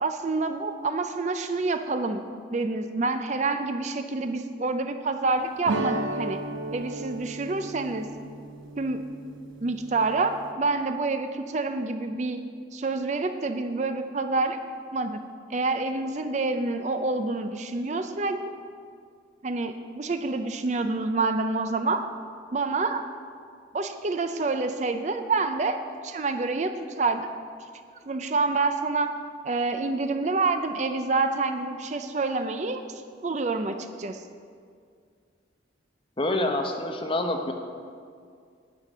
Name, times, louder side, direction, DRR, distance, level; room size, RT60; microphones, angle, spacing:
voice 1, 0.0-2.2 2.5-6.4 6.7-8.1 8.8-9.0 9.6-12.4 12.7-14.6 14.9-15.2 15.5-18.5 19.4-22.0 22.5-23.0 23.7-25.8 26.0-27.3 28.1-29.1 29.4-34.2, right 3 dB, 35° right, 8 dB, 0.5 m, -27 dB
sound 1, 5.7-10.5, right 2 dB, 85° right, 0.7 m, -35 dB
voice 2, 36.2-37.5, left 1 dB, 25° left, 3 dB, 0.9 m, -27 dB
10.5 x 8.5 x 6.1 m, 2.2 s
head